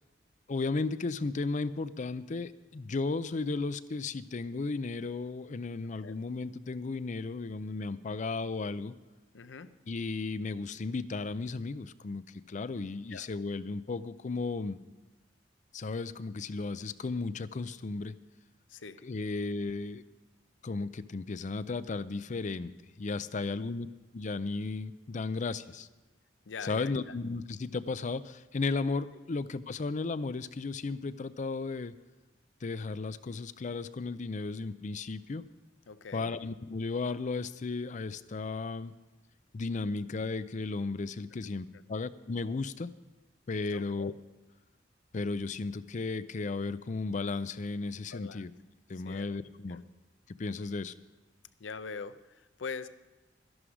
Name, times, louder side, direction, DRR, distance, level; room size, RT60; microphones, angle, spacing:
voice 1, 0.5-8.9 9.9-14.8 15.7-18.1 19.0-20.0 20.6-23.9 24.1-25.9 26.6-31.9 32.6-35.4 36.1-38.9 39.5-42.9 43.5-44.1 45.1-48.5 48.9-49.8 50.4-50.9, left 3 dB, 40° left, 15 dB, 0.5 m, -35 dB
voice 2, 9.3-9.7 13.1-13.3 18.7-19.0 26.5-27.1 35.9-36.3 43.7-44.1 48.1-48.4 48.9-49.3 49.7-49.8 50.6-50.7 51.6-52.9, left 5 dB, 80° left, 13 dB, 0.6 m, -43 dB
13.0 x 11.0 x 4.9 m, 1.2 s
head